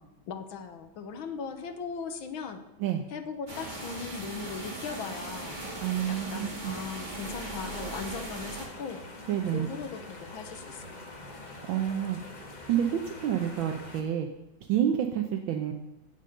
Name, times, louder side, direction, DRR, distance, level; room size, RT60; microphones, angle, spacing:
voice 1, 0.3-2.6 3.1-5.6 6.1-9.0 9.5-11.3, left 5 dB, 85° left, 7 dB, 1.8 m, -39 dB
sound 1, 3.5-8.7, right 2 dB, 25° right, 2.0 m, -39 dB
voice 2, 5.8-6.7 9.3-9.7 11.7-12.2 12.7-14.3 14.7-15.7, right 10 dB, 75° right, 4 dB, 1.6 m, -28 dB
sound 2, 7.2-14.0, left 2 dB, 25° left, 1.3 m, -45 dB
16.0 x 5.4 x 6.6 m, 0.93 s
omnidirectional pair, 2.2 m